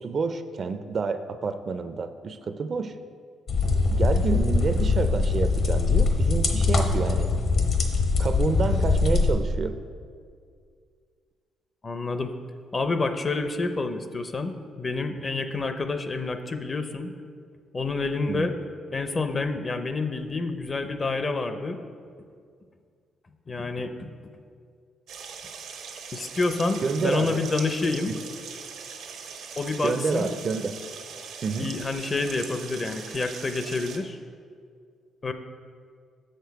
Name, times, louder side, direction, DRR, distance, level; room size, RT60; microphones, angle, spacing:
voice 1, 0.0-2.9 3.9-7.3 8.2-9.8 18.3-18.5 26.8-27.4 29.8-30.8 31.4-31.7, right 4 dB, 45° right, 10 dB, 0.4 m, -28 dB
sound 1, 3.5-9.3, left 4 dB, 60° left, 1.0 m, -22 dB
voice 2, 11.8-12.4 12.7-17.1 17.7-18.5 18.9-21.8 23.5-24.3 26.1-28.1 29.6-30.3 31.6-34.2 35.2-35.3, left 3 dB, 35° left, 8 dB, 0.5 m, -28 dB
sound 2, 25.1-34.0, right 6 dB, 80° right, 0.8 m, -40 dB
6.6 x 6.5 x 4.6 m, 2.1 s
cardioid pair, 90°, 0 cm